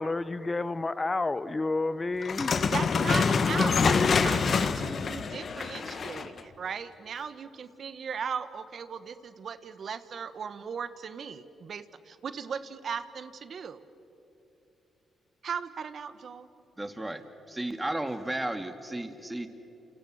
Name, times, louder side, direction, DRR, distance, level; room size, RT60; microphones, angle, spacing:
voice 1, 0.0-2.5 3.2-4.3, left 3 dB, 30° left, 15 dB, 1.1 m, -30 dB
sound 1, 2.2-6.4, left 5 dB, 55° left, 1.3 m, -26 dB
voice 2, 2.7-13.8 15.4-16.5, right 6 dB, 60° right, 12 dB, 1.3 m, -37 dB
voice 3, 16.8-17.2 17.5-19.5, right 1 dB, 15° right, 7 dB, 2.3 m, -33 dB
29.5 x 28.0 x 6.5 m, 3.0 s
supercardioid pair, 60°, 0 cm